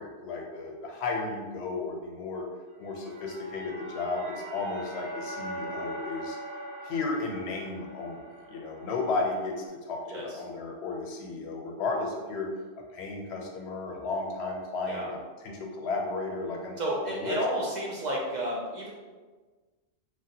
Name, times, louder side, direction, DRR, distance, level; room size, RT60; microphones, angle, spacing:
voice 1, 0.0-2.4 2.8-6.4 6.8-12.5 12.9-16.8 17.0-17.4, left 3 dB, 85° left, 1 dB, 0.9 m, -34 dB
sound 1, 2.7-9.7, equal, 85° right, 1.0 m, -41 dB
voice 2, 16.8-18.9, equal, 55° right, -3 dB, 0.5 m, -31 dB
3.2 x 2.4 x 2.6 m, 1.4 s
omnidirectional pair, 1.1 m